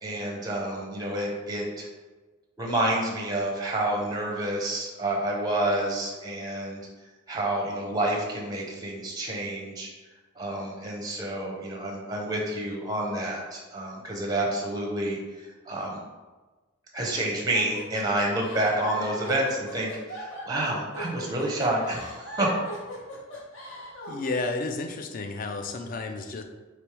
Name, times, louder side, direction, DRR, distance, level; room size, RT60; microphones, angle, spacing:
voice 1, 0.0-1.9 2.6-6.8 7.3-9.9 10.4-15.2 15.4-16.0 16.9-22.6, right 1 dB, 20° right, -1 dB, 0.6 m, -29 dB
sound 1, 17.5-24.3, equal, 60° left, 0.9 m, -39 dB
voice 2, 24.1-26.4, left 3 dB, 40° left, 6 dB, 0.3 m, -31 dB
3.2 x 3.0 x 4.6 m, 1.3 s
head